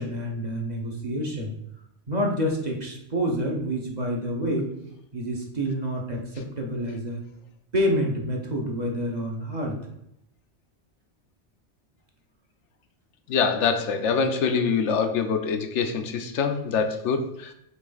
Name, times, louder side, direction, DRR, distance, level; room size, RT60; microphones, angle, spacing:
voice 1, 0.0-1.5 2.1-4.7 5.1-7.2 7.7-9.8, equal, 40° right, 0 dB, 1.0 m, -28 dB
voice 2, 13.3-17.5, left 5 dB, 80° left, 7 dB, 1.0 m, -24 dB
7.5 x 3.3 x 3.9 m, 0.79 s
omnidirectional pair, 1.2 m